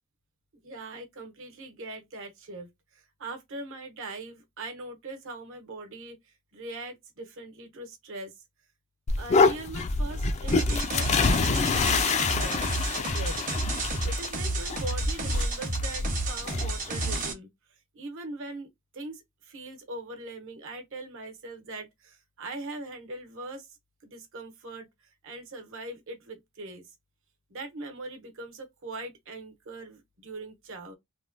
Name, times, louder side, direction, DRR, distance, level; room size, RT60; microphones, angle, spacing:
voice 1, 0.6-8.3 9.2-13.4 13.7-17.5 17.9-18.7 18.9-23.8 24.0-26.9 27.5-30.9, right 2 dB, 60° right, 0.9 m, -41 dB
sound 1, 9.1-17.3, left 4 dB, 30° left, 0.3 m, -27 dB
sound 2, 10.5-17.3, right 2 dB, 35° right, 0.8 m, -31 dB
3.1 x 2.2 x 2.5 m
head